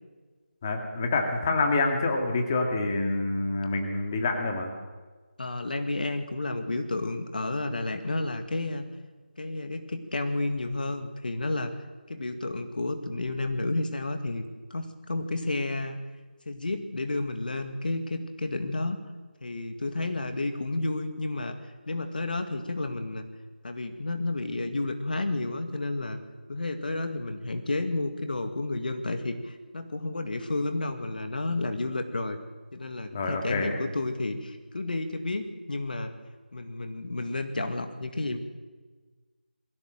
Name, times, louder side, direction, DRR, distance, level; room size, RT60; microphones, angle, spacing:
voice 1, 0.6-4.7 33.1-33.7, left 3 dB, 20° left, 3 dB, 2.1 m, -27 dB
voice 2, 5.4-8.9 9.4-11.7 12.1-14.4 14.7-16.0 16.5-19.0 19.4-23.3 23.6-26.2 26.5-32.4 32.7-36.1 36.5-38.4, left 2 dB, 55° left, 7 dB, 2.1 m, -31 dB
22.0 x 16.5 x 7.8 m, 1.4 s
figure-of-eight pair, 165°, 6 cm